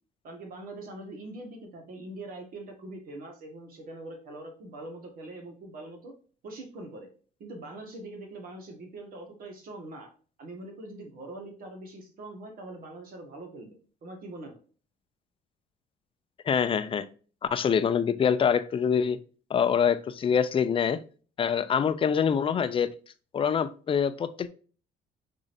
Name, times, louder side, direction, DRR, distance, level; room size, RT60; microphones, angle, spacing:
voice 1, 0.2-6.1 6.4-7.1 7.4-10.1 10.4-13.8 14.0-14.6, right 2 dB, 60° right, 2 dB, 1.7 m, -43 dB
voice 2, 16.5-17.1 17.5-19.2 19.5-21.0 21.4-22.9 23.3-24.5, left 7 dB, 30° left, 12 dB, 0.5 m, -25 dB
5.1 x 3.7 x 2.6 m, 0.39 s
cardioid pair, 110°, 17 cm